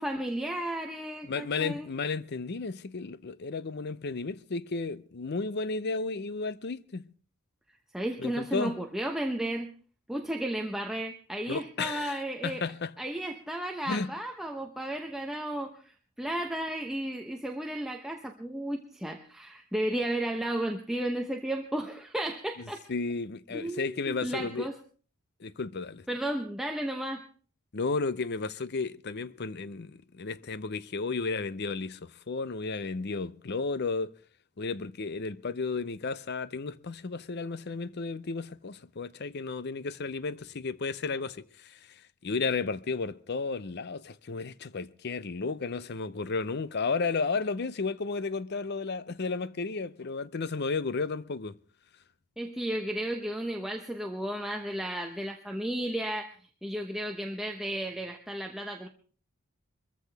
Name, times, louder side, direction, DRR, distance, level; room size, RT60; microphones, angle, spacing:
voice 1, 0.0-1.9 7.9-9.7 10.1-12.6 13.0-22.8 23.5-24.7 26.1-27.2 52.4-56.3 56.6-58.9, right 1 dB, ahead, 0.9 m, -33 dB
voice 2, 1.2-7.1 8.2-8.8 11.5-12.9 13.9-14.1 22.6-24.7 25.4-26.1 27.7-34.1 34.6-51.6, left 4 dB, 55° left, 0.6 m, -33 dB
22.5 x 14.5 x 3.4 m
head